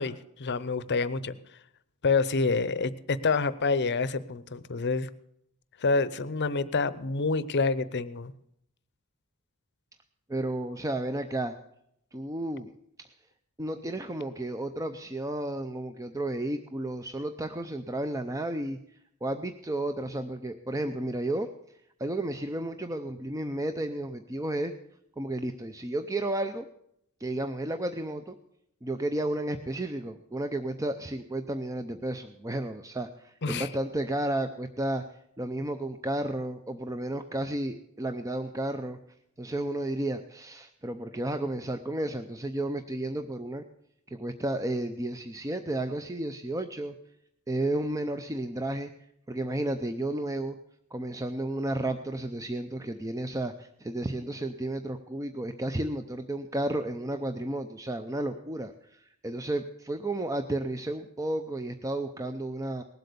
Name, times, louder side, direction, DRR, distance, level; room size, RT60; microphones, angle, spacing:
voice 1, 0.0-1.4 2.0-5.1 5.8-8.3 33.4-33.7, left 4 dB, 50° left, 16 dB, 0.7 m, -27 dB
voice 2, 10.3-11.6 12.1-12.7 13.6-18.8 19.2-21.5 22.0-24.7 25.2-26.7 27.2-28.4 28.8-35.0 35.4-39.0 39.4-43.6 44.1-46.9 47.5-48.9 49.3-50.6 50.9-62.8, right 1 dB, 15° right, 8 dB, 0.5 m, -32 dB
19.0 x 8.0 x 6.8 m, 0.74 s
head